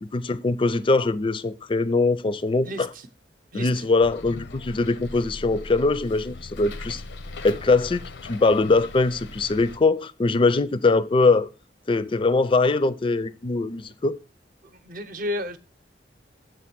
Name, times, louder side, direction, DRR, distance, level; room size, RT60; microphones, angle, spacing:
voice 1, 0.0-2.9 3.5-7.0 7.4-11.5 11.9-14.2, left 3 dB, 30° left, 0.4 m, -22 dB
voice 2, 2.6-3.0 3.5-3.9 14.7-15.6, left 1 dB, 50° right, 0.7 m, -32 dB
Bus, 4.0-9.8, left 2 dB, 85° left, 0.7 m, -39 dB
7.5 x 3.7 x 5.9 m
head